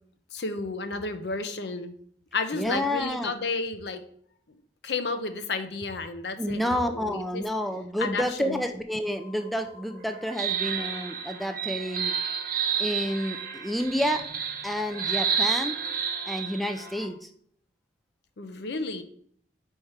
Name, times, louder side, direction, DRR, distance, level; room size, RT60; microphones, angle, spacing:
voice 1, 0.3-2.0 2.3-4.0 4.8-7.4 8.0-8.6 18.4-19.0, left 3 dB, 70° left, 9 dB, 0.6 m, -32 dB
voice 2, 2.5-3.3 6.4-12.2 12.8-14.2 14.6-15.8 16.3-17.3, equal, ahead, 6 dB, 0.3 m, -29 dB
sound 1, 9.1-17.1, right 7 dB, 50° right, 0.9 m, -31 dB
4.6 x 4.3 x 4.9 m, 0.62 s
head